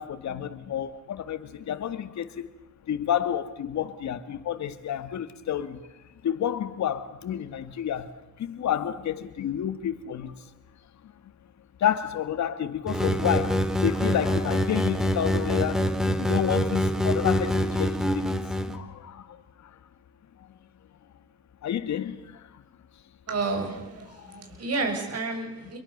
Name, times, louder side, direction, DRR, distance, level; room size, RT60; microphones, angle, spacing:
voice 1, 0.0-2.5 2.9-5.8 6.2-10.3 11.8-18.3 18.7-19.4 21.6-22.5 24.2-24.4, left 10 dB, 65° left, 2.1 m, -30 dB
sound 1, 12.9-18.8, equal, ahead, 3.5 m, -25 dB
voice 2, 23.3-25.8, right 3 dB, 55° right, 7.6 m, -30 dB
28.5 x 23.0 x 6.8 m
cardioid pair, 90°, 30 cm